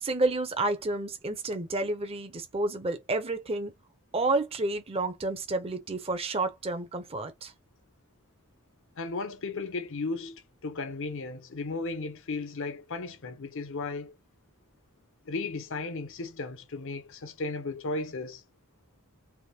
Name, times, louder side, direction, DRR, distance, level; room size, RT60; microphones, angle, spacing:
voice 1, 0.0-3.7 4.1-7.5, right 2 dB, 25° right, 0.7 m, -30 dB
voice 2, 9.0-14.1 15.2-18.4, left 3 dB, 60° left, 0.9 m, -35 dB
3.5 x 3.1 x 2.9 m
head